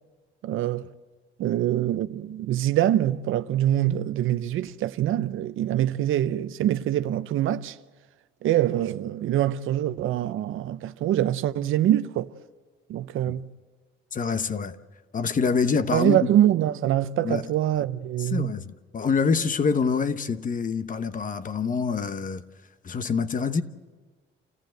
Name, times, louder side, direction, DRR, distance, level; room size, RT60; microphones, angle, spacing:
voice 1, 0.4-0.9 1.4-7.8 8.4-12.3 12.9-13.5 15.9-18.5, right 12 dB, 75° right, 0.7 m, -24 dB
voice 2, 14.1-14.8 15.1-16.2 17.2-17.4 18.2-22.4 22.8-23.6, left 5 dB, 40° left, 1.1 m, -26 dB
28.0 x 14.5 x 7.8 m
cardioid pair, 90°, 21 cm